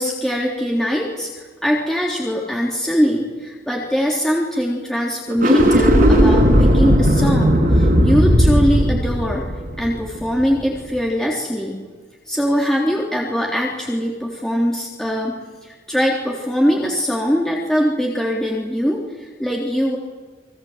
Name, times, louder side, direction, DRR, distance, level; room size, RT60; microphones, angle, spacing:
voice 1, 0.0-9.5 9.8-11.8 12.3-15.3 15.6-20.0, equal, 5° left, -3 dB, 3.5 m, -21 dB
sound 1, 5.3-10.6, equal, 55° right, 5.7 m, -15 dB
27.5 x 23.0 x 8.1 m, 1.4 s
head